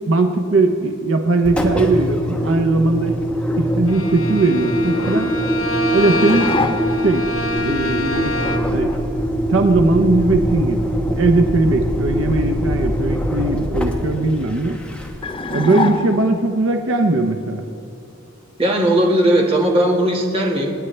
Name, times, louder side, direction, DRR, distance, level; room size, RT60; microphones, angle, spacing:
voice 1, 0.1-3.2 3.5-5.4 5.9-6.5 7.0-7.3 7.6-8.3 8.7-8.9 9.5-10.9 11.2-14.8 15.5-17.6, right 2 dB, 75° right, 5 dB, 0.8 m, -19 dB
Engine, 1.4-15.4, equal, 5° left, 1.2 m, -23 dB
Bowed string instrument, 3.9-8.9, left 1 dB, 75° left, 1.1 m, -26 dB
sound 1, 6.0-7.2 15.2-16.5, left 3 dB, 25° left, 0.6 m, -25 dB
voice 2, 18.6-20.7, right 1 dB, 30° right, 0 dB, 1.7 m, -17 dB
26.5 x 9.9 x 3.3 m, 2.8 s
head